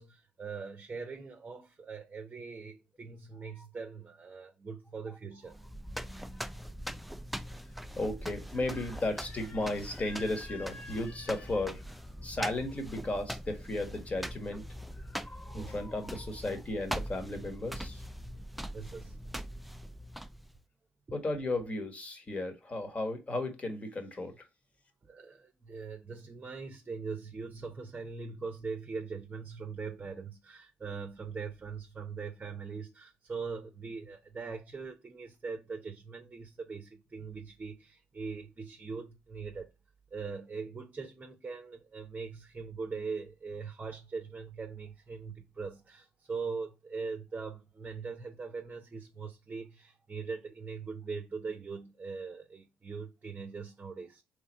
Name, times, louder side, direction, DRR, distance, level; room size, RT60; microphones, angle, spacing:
voice 1, 0.0-5.6 15.5-15.7 18.7-19.2 25.0-39.7 40.1-54.2, right 5 dB, 30° right, 0.8 m, -41 dB
sound 1, 5.5-20.6, equal, ahead, 0.4 m, -42 dB
voice 2, 8.0-14.7 14.9-18.0 21.1-24.5, left 2 dB, 30° left, 1.5 m, -35 dB
3.5 x 3.2 x 4.3 m
supercardioid pair, 60°, 4 cm